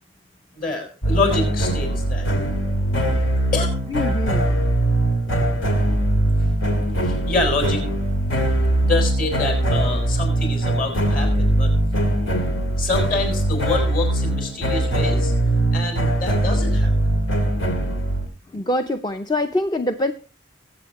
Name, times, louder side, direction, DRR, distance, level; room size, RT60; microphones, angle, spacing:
voice 1, 0.5-2.3 3.5-3.7 7.0-7.8 8.8-11.7 12.8-15.3 15.7-16.9, left 3 dB, 45° left, 4 dB, 5.0 m, -26 dB
sound 1, 1.0-18.3, right 1 dB, 85° left, 2.3 m, -21 dB
voice 2, 3.9-4.5 18.5-20.1, left 1 dB, 20° left, 8 dB, 0.5 m, -24 dB
22.5 x 7.8 x 2.9 m, 0.38 s
head